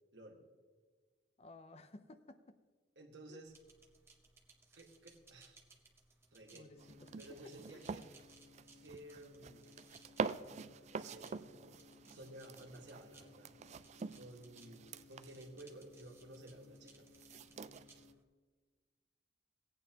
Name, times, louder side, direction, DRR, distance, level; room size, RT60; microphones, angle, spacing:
voice 1, 1.4-2.6 3.3-3.4 6.5-7.1 7.7-7.8, left 2 dB, 35° left, 10 dB, 0.5 m, -56 dB
voice 2, 2.9-3.5 4.7-5.6 6.3-6.7 7.2-8.1 8.8-9.8 10.9-11.8 12.1-13.5 14.1-17.1, right 1 dB, 75° right, 2 dB, 1.5 m, -54 dB
sound 1, 3.5-18.2, right 3 dB, 15° right, 0.9 m, -66 dB
sound 2, 6.7-18.2, left 3 dB, 75° left, 3.0 m, -63 dB
sound 3, 6.8-18.1, right 5 dB, 40° right, 0.3 m, -46 dB
16.5 x 8.9 x 2.9 m, 1.4 s
head